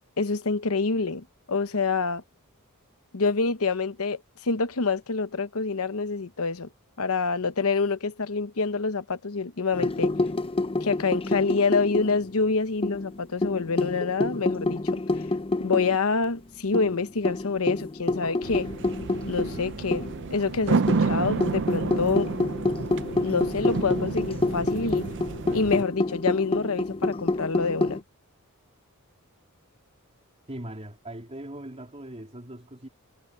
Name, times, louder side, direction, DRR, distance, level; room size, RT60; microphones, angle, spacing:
voice 1, 0.2-2.2 3.1-6.7 7.0-10.1 10.8-15.0 15.6-18.7 19.3-22.3 23.2-25.1 25.5-28.0, left 4 dB, 70° left, 1.0 m, -27 dB
sound 1, 9.7-12.4 12.8-16.0 16.2-16.3 16.7-20.3 20.9-28.0, left 2 dB, 25° left, 0.6 m, -28 dB
sound 2, 18.4-25.8, right 4 dB, 55° right, 0.5 m, -30 dB
voice 2, 30.5-32.9, right 1 dB, 30° right, 3.7 m, -40 dB
head